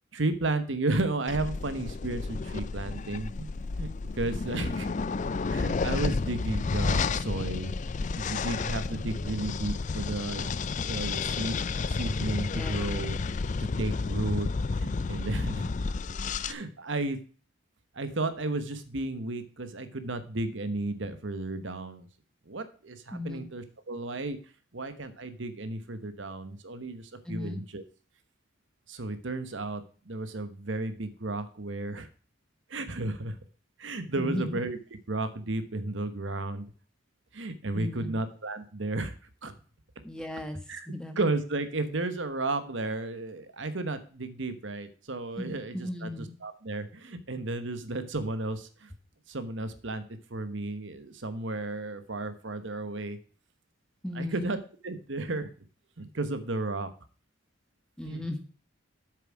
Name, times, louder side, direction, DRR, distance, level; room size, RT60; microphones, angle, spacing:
voice 1, 0.1-3.5 3.8-3.9 4.2-4.9 5.5-7.7 8.2-10.6 10.8-11.6 11.9-13.2 13.6-15.7 16.4-17.2 17.9-22.1 22.5-24.4 24.7-27.8 28.9-32.1 32.7-33.4 33.8-34.8 35.1-36.7 37.3-39.1 39.4-39.5 40.7-40.9 41.2-48.9 49.3-50.0 50.3-53.2 54.1-54.6 54.8-55.5 56.0-56.9 58.1-58.2, right 2 dB, 70° right, 11 dB, 1.1 m, -33 dB
sound 1, 1.3-16.5, left 4 dB, 40° left, 0.4 m, -31 dB
voice 2, 23.1-23.5 27.2-27.6 34.2-34.6 37.7-38.2 40.0-40.6 40.9-41.2 45.4-46.3 54.0-54.5 58.0-58.4, left 1 dB, 5° left, 6 dB, 1.3 m, -36 dB
8.3 x 7.1 x 4.8 m, 0.39 s
head